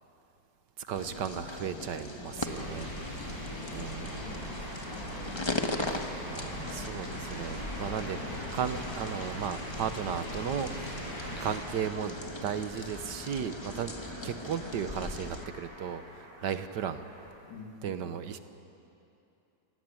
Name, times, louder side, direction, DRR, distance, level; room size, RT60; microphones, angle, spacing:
voice 1, 0.8-4.5 6.3-11.0 11.4-14.0 14.2-17.0 17.8-18.4, right 8 dB, 75° right, 10 dB, 1.6 m, -36 dB
sound 1, 0.9-15.5, left 2 dB, 20° left, 1.1 m, -40 dB
sound 2, 2.3-11.6, equal, 55° left, 7.2 m, -40 dB
sound 3, 3.7-17.3, right 1 dB, 50° right, 5.5 m, -48 dB
voice 2, 3.9-4.6 4.9-5.6 17.5-17.9, left 3 dB, 80° left, 0 dB, 3.7 m, -48 dB
27.0 x 17.0 x 9.2 m, 2.8 s
omnidirectional pair, 1.9 m